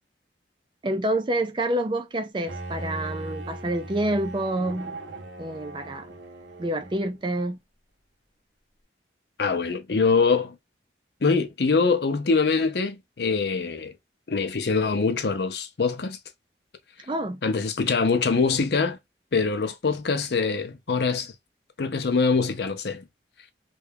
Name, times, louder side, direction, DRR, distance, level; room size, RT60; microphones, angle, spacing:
voice 1, 0.8-5.0 5.4-6.2 6.6-7.6 17.0-17.4, right 1 dB, 25° right, 0.4 m, -28 dB
Bowed string instrument, 2.5-7.2, right 2 dB, 90° right, 0.9 m, -38 dB
voice 2, 9.4-10.6 11.2-13.9 14.3-16.2 17.4-19.0 19.3-21.3 21.8-23.0, left 4 dB, 65° left, 0.6 m, -24 dB
3.3 x 2.3 x 3.3 m
head